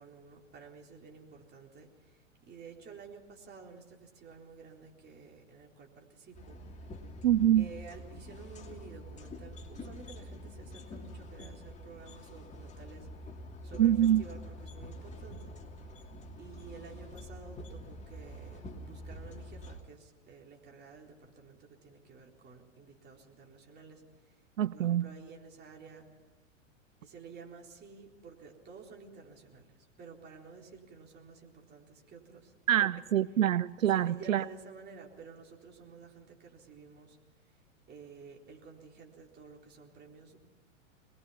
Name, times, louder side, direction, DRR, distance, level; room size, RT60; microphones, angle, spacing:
voice 1, 0.0-6.9 7.6-13.1 13.6-15.5 15.8-15.9 16.4-26.1 27.0-32.5 33.2-33.5 33.9-37.5 37.9-40.4, right 5 dB, 25° right, 0 dB, 4.1 m, -52 dB
sound 1, 6.3-19.8, equal, 20° left, 2.7 m, -46 dB
voice 2, 7.2-7.7 13.8-14.2 24.6-25.1 32.7-34.4, right 11 dB, 80° right, 19 dB, 0.5 m, -25 dB
23.0 x 20.5 x 5.8 m, 1.3 s
hypercardioid pair, 105°, 39 cm